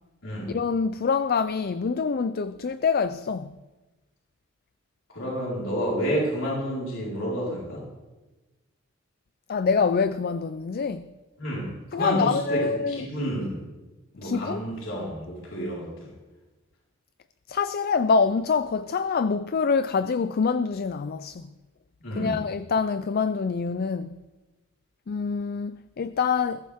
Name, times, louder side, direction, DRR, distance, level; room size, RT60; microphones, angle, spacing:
voice 1, 0.5-3.5 9.5-11.1 11.9-13.0 14.2-14.6 17.5-21.5 22.2-24.2 25.1-26.6, left 5 dB, 50° left, 0.4 m, -25 dB
voice 2, 5.1-7.8 11.4-13.6 14.2-15.9 22.0-22.4, equal, 70° left, 4.6 m, -29 dB
21.0 x 15.0 x 3.6 m
head